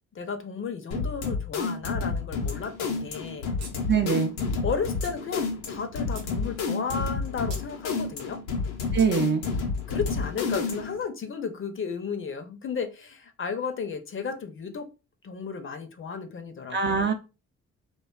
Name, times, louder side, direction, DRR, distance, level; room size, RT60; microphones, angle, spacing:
voice 1, 0.1-3.5 4.6-8.4 9.9-14.9 15.2-17.0, left 5 dB, 35° left, 8 dB, 0.5 m, -33 dB
sound 1, 0.9-11.0, left 4 dB, 90° left, 0.6 m, -30 dB
sound 2, 3.6-3.7 4.0-4.1 5.0-5.2 5.8-6.3 7.5-7.7 9.0-9.1, right 4 dB, 85° right, 0.7 m, -43 dB
voice 2, 3.9-4.3 8.9-9.4 16.7-17.1, right 6 dB, 30° right, 6 dB, 0.4 m, -23 dB
2.4 x 2.2 x 2.3 m, 0.30 s
hypercardioid pair, 45°, 37 cm